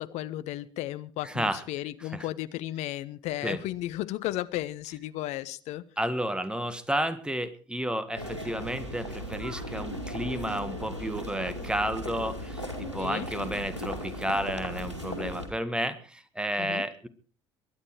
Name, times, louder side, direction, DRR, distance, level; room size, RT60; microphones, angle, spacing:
voice 1, 0.0-5.8 13.0-13.3 16.6-16.8, left 14 dB, 50° left, 14 dB, 0.9 m, -34 dB
voice 2, 1.2-1.6 2.1-2.2 3.4-3.6 6.0-17.1, right 1 dB, 5° right, 12 dB, 1.6 m, -31 dB
sound 1, 8.2-15.5, equal, 90° right, 2.2 m, -37 dB
22.0 x 9.9 x 4.8 m, 0.39 s
figure-of-eight pair, 60°, 15 cm